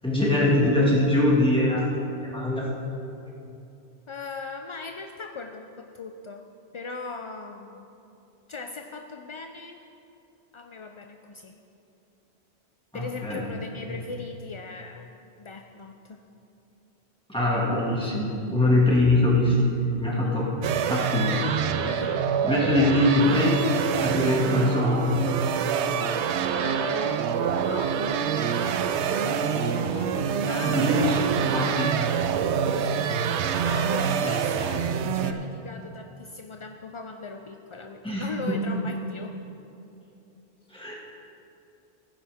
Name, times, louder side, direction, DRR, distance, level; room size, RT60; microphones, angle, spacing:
voice 1, 0.0-2.7 12.9-13.4 13.9-14.0 17.3-19.6 20.0-20.5 20.8-21.8 22.4-23.6 24.0-25.1 29.1-30.1 30.6-31.9 34.2-34.3 34.7-35.1 38.0-38.6 40.7-40.9, left 1 dB, 5° left, -5 dB, 1.9 m, -23 dB
voice 2, 4.1-6.5 6.7-8.0 8.5-9.8 10.5-11.5 12.9-15.1 15.4-16.2 18.0-18.1 18.6-18.7 20.2-20.4 21.8-22.2 26.5-28.0 30.5-30.8 32.9-33.1 33.6-39.4, left 3 dB, 50° left, 4 dB, 0.3 m, -39 dB
sound 1, 20.6-35.3, right 7 dB, 90° right, 0.9 m, -26 dB
15.5 x 9.7 x 3.5 m, 2.8 s
omnidirectional pair, 1.1 m